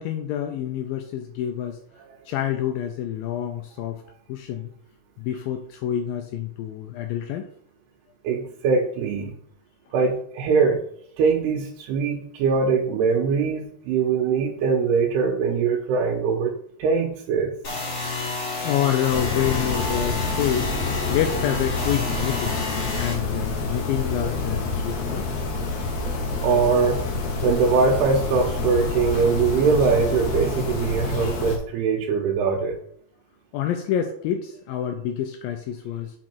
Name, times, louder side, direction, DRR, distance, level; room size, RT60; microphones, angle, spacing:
voice 1, 0.0-1.8 2.3-4.0 4.3-4.7 5.2-7.5 18.6-20.7 21.1-22.6 22.9-25.3 33.5-36.1, left 10 dB, 85° left, 6 dB, 2.1 m, -27 dB
voice 2, 8.2-9.3 9.9-10.8 11.2-16.5 16.8-17.5 26.4-27.0 27.4-32.8, right 5 dB, 85° right, -1 dB, 2.9 m, -22 dB
sound 1, 17.6-23.1, left 2 dB, 40° left, 3.3 m, -30 dB
sound 2, 19.1-31.6, left 4 dB, 60° left, 2.2 m, -28 dB
6.2 x 5.6 x 4.4 m, 0.63 s
omnidirectional pair, 4.6 m